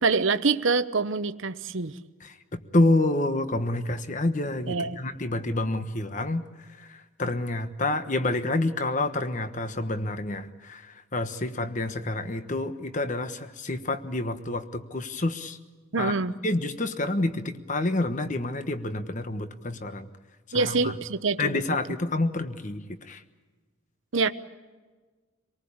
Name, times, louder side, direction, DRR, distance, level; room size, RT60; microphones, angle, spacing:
voice 1, 0.0-1.9 4.7-5.0 15.9-16.3 20.5-21.6 24.1-24.3, right 4 dB, 65° right, 11 dB, 0.9 m, -25 dB
voice 2, 2.2-15.6 16.0-16.2 16.4-20.1 20.5-20.9 21.4-23.2, left 2 dB, 35° left, 10 dB, 1.2 m, -28 dB
27.0 x 19.0 x 8.7 m, 1.3 s
head